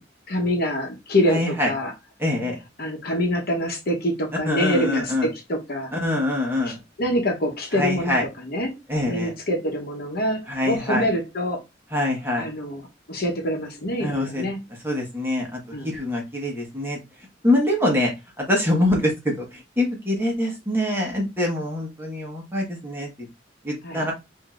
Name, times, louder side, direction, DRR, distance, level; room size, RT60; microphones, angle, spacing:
voice 1, 0.3-1.9 2.8-5.9 6.7-6.8 7.0-8.7 9.0-11.6 12.4-12.8 13.1-14.6 15.7-15.9 23.8-24.0, equal, 55° left, 1.1 m, -25 dB
voice 2, 1.3-1.7 2.2-2.5 4.4-5.3 5.9-6.8 7.7-8.2 8.9-9.3 10.5-11.0 11.9-12.5 14.0-14.4 14.8-17.0 17.4-18.1 18.4-23.3 23.6-24.1, left 1 dB, 10° right, 1.3 m, -24 dB
5.1 x 2.8 x 2.5 m
head